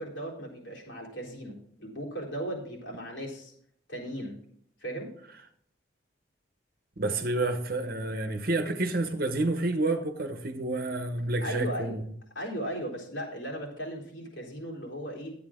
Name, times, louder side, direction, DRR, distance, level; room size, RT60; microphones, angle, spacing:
voice 1, 0.0-3.5 3.9-4.4 4.8-5.1 11.4-12.0 12.3-15.3, equal, 85° left, -3 dB, 3.8 m, -37 dB
voice 2, 7.0-12.0, right 2 dB, 50° right, 6 dB, 1.0 m, -29 dB
12.0 x 8.4 x 3.7 m, 0.66 s
head